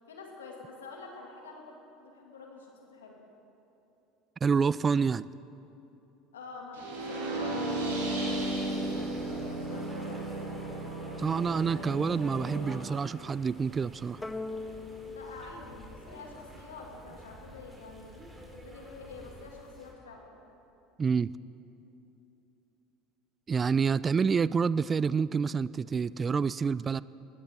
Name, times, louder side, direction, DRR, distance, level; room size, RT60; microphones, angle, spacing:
voice 1, 0.0-3.2 6.3-10.3 15.0-18.1 18.5-20.3, left 3 dB, 90° left, 0 dB, 2.3 m, -48 dB
voice 2, 4.4-5.3 11.2-14.2 21.0-21.3 23.5-27.0, right 5 dB, 30° right, 20 dB, 0.3 m, -28 dB
sound 1, 6.7-12.7, right 1 dB, 85° right, 4.2 m, -34 dB
sound 2, 8.2-19.9, equal, 10° right, 4.6 m, -49 dB
sound 3, 14.2-16.8, left 3 dB, 10° left, 0.6 m, -41 dB
20.0 x 17.0 x 3.7 m, 2.9 s
hypercardioid pair, 75°, 0 cm